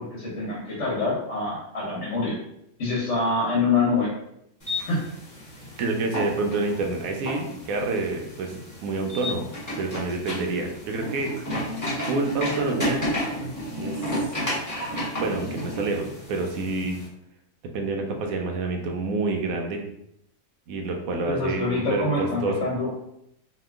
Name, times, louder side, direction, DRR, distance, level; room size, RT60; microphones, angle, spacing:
voice 1, 0.0-2.3 2.8-4.1 4.8-5.0 21.3-22.9, left 3 dB, 55° left, -5 dB, 1.1 m, -25 dB
sound 1, 4.6-17.1, equal, 15° left, 0.7 m, -32 dB
voice 2, 5.8-8.6 8.8-9.5 9.8-11.3 12.0-13.0 13.8-14.0 15.2-17.0 17.7-19.8 20.7-22.5, right 3 dB, 80° right, 2 dB, 1.0 m, -27 dB
2.8 x 2.4 x 3.4 m, 0.80 s
omnidirectional pair, 1.5 m